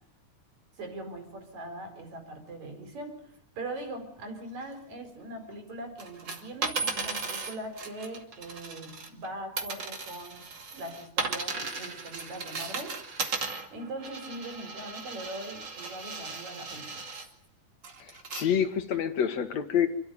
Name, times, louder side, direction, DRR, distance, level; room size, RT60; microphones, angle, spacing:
voice 1, 0.8-10.5 10.7-13.1 13.7-17.2, right 1 dB, 65° right, 6 dB, 5.5 m, -41 dB
sound 1, 6.0-9.3 9.6-17.2 17.8-18.4 19.0-19.1, right 4 dB, 35° right, 2.8 m, -36 dB
voice 2, 18.0-19.9, left 8 dB, 60° left, 9 dB, 2.9 m, -27 dB
28.0 x 13.0 x 9.4 m, 0.70 s
omnidirectional pair, 3.6 m